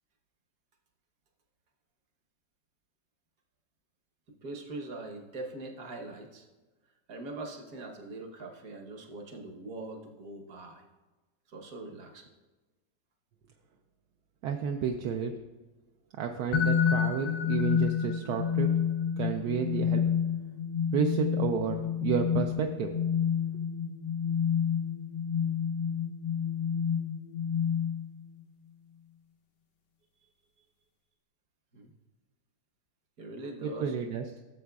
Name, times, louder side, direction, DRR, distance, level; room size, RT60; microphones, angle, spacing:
voice 1, 4.4-6.5 7.1-10.9 11.5-12.3 31.7-31.9 33.2-33.9, right 2 dB, 55° right, 2 dB, 1.5 m, -42 dB
voice 2, 14.4-15.3 16.2-18.7 19.2-20.0 20.9-22.9 33.6-34.2, right 7 dB, 70° right, 3 dB, 1.0 m, -31 dB
sound 1, 16.5-28.3, left 7 dB, 80° left, 1.3 m, -29 dB
15.0 x 7.3 x 2.3 m, 1.2 s
omnidirectional pair, 1.9 m